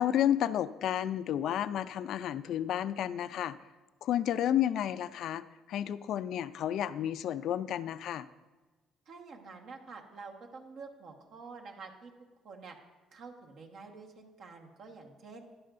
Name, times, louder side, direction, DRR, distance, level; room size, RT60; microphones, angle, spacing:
voice 1, 0.0-3.6 4.0-5.4 5.7-8.3, left 11 dB, 65° left, 14 dB, 0.4 m, -31 dB
voice 2, 9.1-12.1 12.4-12.8 13.1-15.4, right 4 dB, 65° right, 2 dB, 1.3 m, -48 dB
12.0 x 10.0 x 2.6 m, 1.2 s
cardioid pair, 115°, 0 cm